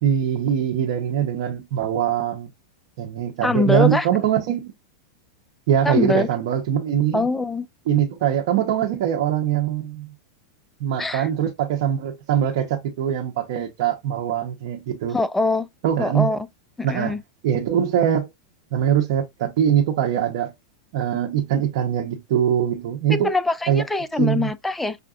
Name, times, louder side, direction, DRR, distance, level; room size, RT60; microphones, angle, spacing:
voice 1, 0.0-2.5 3.0-4.7 5.7-7.3 7.9-10.1 10.8-15.2 15.8-16.3 16.8-17.2 17.4-18.3 18.7-20.5 20.9-23.3 23.7-23.8 24.2-24.5, right 9 dB, 60° right, 0.8 m, -22 dB
voice 2, 3.4-4.1 5.8-6.3 7.1-7.7 11.0-11.3 15.1-15.7 16.0-16.4 16.8-17.2 23.1-25.0, left 3 dB, 5° left, 0.4 m, -23 dB
5.7 x 2.5 x 2.4 m
supercardioid pair, 130°, 3 cm